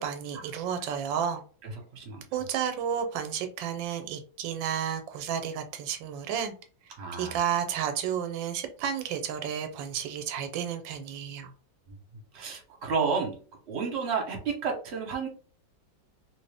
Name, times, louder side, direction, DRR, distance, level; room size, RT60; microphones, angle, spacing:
voice 1, 0.0-1.4 2.3-6.5 7.2-11.5, right 8 dB, 85° right, 7 dB, 1.3 m, -31 dB
voice 2, 1.9-2.2 7.0-7.4 12.3-13.4 13.7-15.3, right 5 dB, 45° right, 0 dB, 1.1 m, -31 dB
3.0 x 2.6 x 3.3 m, 0.40 s
omnidirectional pair, 2.0 m